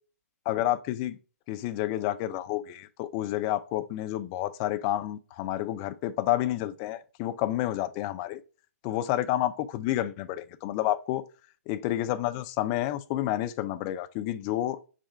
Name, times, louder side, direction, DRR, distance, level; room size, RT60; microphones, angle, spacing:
voice 1, 0.5-1.2 1.5-8.4 8.8-11.2 11.7-14.9, left 14 dB, 25° left, 0.4 m, -29 dB
4.9 x 2.4 x 4.5 m
figure-of-eight pair, 125°, 8 cm